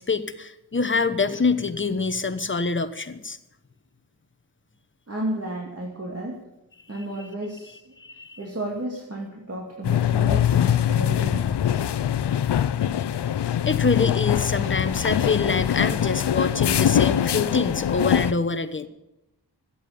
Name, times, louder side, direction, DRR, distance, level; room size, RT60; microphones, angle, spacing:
voice 1, 0.0-3.4 6.9-7.3 8.0-8.4 13.6-18.9, left 4 dB, 30° left, 10 dB, 1.0 m, -25 dB
voice 2, 5.1-6.4 6.9-7.9 8.4-11.8, right 1 dB, 35° right, -1 dB, 2.5 m, -32 dB
sound 1, 9.8-18.3, left 10 dB, 75° left, 0.6 m, -23 dB
14.0 x 8.7 x 8.8 m, 0.91 s
wide cardioid pair, 110°, 41 cm